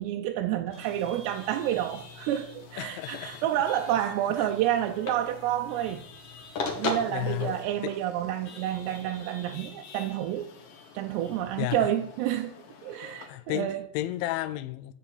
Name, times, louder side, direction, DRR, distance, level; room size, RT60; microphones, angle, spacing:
voice 1, 0.0-6.0 6.8-10.5 10.9-12.5 12.8-13.9, right 12 dB, 80° right, 2.6 m, -29 dB
Chatter / Vehicle horn car horn honking / Traffic noise roadway noise, 0.7-13.3, left 4 dB, 65° left, 4.2 m, -49 dB
sound 1, 0.8-7.6, left 3 dB, 45° left, 2.2 m, -39 dB
voice 2, 2.8-3.4 4.4-4.5 7.1-7.5 7.8-7.9 11.6-11.9 13.0-14.9, left 16 dB, 85° left, 2.9 m, -33 dB
15.5 x 5.5 x 8.6 m
omnidirectional pair, 5.4 m